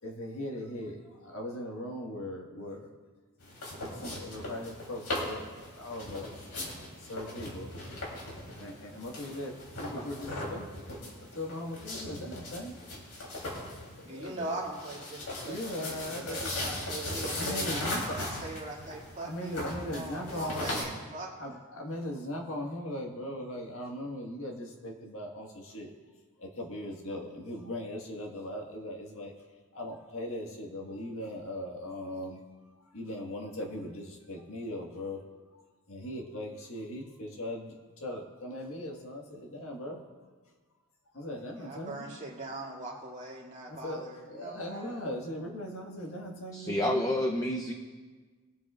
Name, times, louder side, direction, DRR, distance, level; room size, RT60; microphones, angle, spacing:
voice 1, 0.0-2.9 3.8-6.4 7.0-7.7 8.6-10.9 11.3-12.8 14.0-14.6 15.4-16.9 17.3-18.4 19.2-20.9 21.4-25.9 26.4-29.3 29.7-32.4 32.8-35.2 35.5-40.0 41.1-42.1 43.7-47.1, left 1 dB, 65° left, 0 dB, 1.6 m, -39 dB
sound 1, 3.4-20.8, left 1 dB, 85° left, 3.3 m, -38 dB
voice 2, 14.0-18.0 18.4-21.6 41.6-45.1, right 2 dB, 35° right, -4 dB, 2.3 m, -41 dB
voice 3, 46.5-47.7, left 1 dB, 15° left, 3 dB, 0.7 m, -29 dB
22.0 x 8.3 x 2.4 m, 1.4 s
head